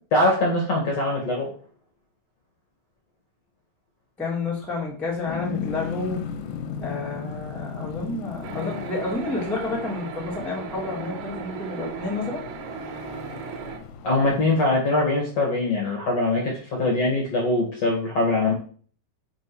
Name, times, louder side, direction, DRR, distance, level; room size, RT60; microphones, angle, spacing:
voice 1, 0.1-1.5 14.0-18.5, left 2 dB, 50° left, -2 dB, 1.9 m, -22 dB
voice 2, 4.2-6.2 6.8-12.4, left 3 dB, ahead, -4 dB, 0.6 m, -30 dB
sound 1, 5.3-14.6, left 7 dB, 75° left, 2.7 m, -36 dB
sound 2, 8.4-13.8, right 7 dB, 70° right, 3.0 m, -36 dB
6.2 x 5.2 x 6.3 m, 0.43 s
omnidirectional pair, 5.8 m